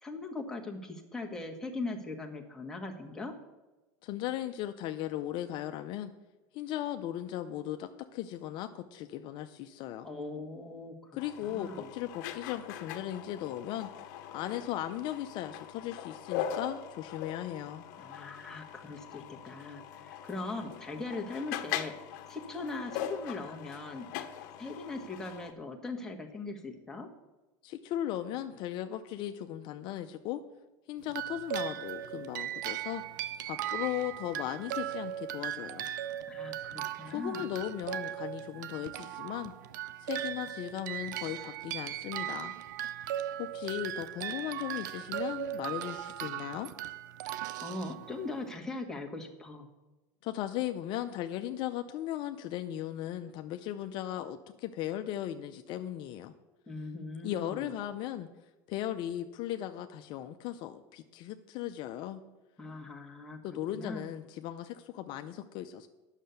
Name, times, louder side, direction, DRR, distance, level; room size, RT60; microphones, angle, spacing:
voice 1, 0.0-3.3 10.0-11.9 18.0-21.9 22.3-24.1 24.6-27.1 36.2-37.5 47.6-49.7 56.7-57.7 62.6-64.1, left 3 dB, 5° left, 0 dB, 1.5 m, -40 dB
voice 2, 4.0-6.1 6.5-10.1 11.1-13.9 14.3-17.8 27.6-30.4 30.9-33.0 33.4-35.9 37.1-39.5 40.0-42.5 43.4-46.7 50.2-56.3 57.2-58.3 58.7-62.2 63.4-65.9, left 12 dB, 55° left, 7 dB, 0.6 m, -37 dB
sound 1, 11.2-25.5, left 9 dB, 70° left, 0.9 m, -41 dB
sound 2, 31.1-48.5, right 11 dB, 85° right, 0.5 m, -38 dB
9.9 x 6.5 x 6.9 m, 1.1 s
supercardioid pair, 120°, 10 cm